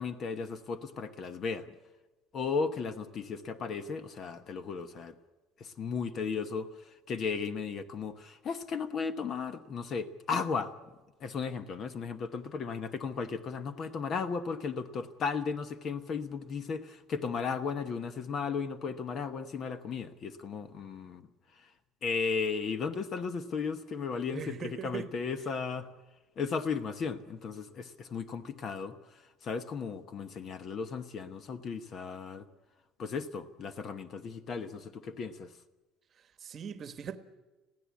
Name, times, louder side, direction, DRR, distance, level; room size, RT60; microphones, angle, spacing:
voice 1, 0.0-1.7 2.3-5.1 5.6-10.7 11.2-21.3 21.6-21.7 22.0-25.9 26.4-32.5 33.0-35.5, left 5 dB, 35° left, 1.1 m, -35 dB
voice 2, 24.3-25.1 36.4-37.2, right 7 dB, 30° right, 1.3 m, -39 dB
22.0 x 15.5 x 8.4 m
cardioid pair, 165°, 0 cm